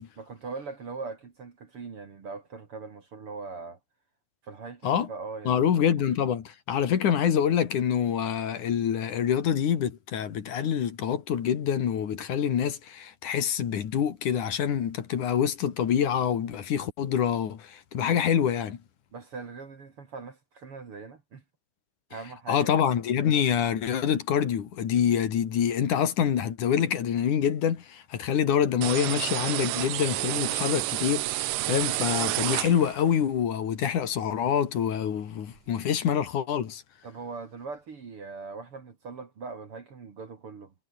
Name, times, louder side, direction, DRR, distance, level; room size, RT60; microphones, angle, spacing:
voice 1, 0.2-3.8 4.4-5.6 19.1-21.4 22.1-22.8 37.0-40.7, right 4 dB, 45° right, 3.1 m, -41 dB
voice 2, 5.5-18.8 22.5-36.8, left 8 dB, 65° left, 3.6 m, -26 dB
sound 1, 28.8-33.1, right 20 dB, 85° right, 2.2 m, -30 dB
omnidirectional pair, 3.9 m